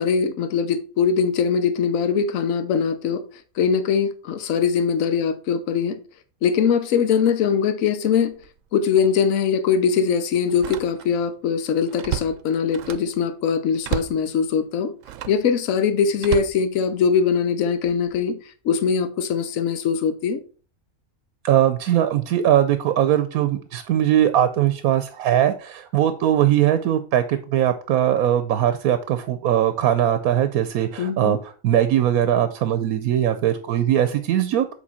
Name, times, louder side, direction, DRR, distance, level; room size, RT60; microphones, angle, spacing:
voice 1, 0.0-3.2 3.6-6.0 6.4-8.3 8.7-14.9 15.3-18.4 18.6-20.4 31.0-31.4, left 6 dB, 70° left, 1.2 m, -21 dB
Slam, 8.3-8.6 9.0-9.2 10.5-11.3 11.6-13.2 13.8-14.3 15.0-15.5 16.2-17.3 17.9-18.2, right 11 dB, 70° right, 0.9 m, -32 dB
voice 2, 21.4-34.7, right 11 dB, 85° right, 1.1 m, -20 dB
7.3 x 4.6 x 4.2 m
omnidirectional pair, 1.5 m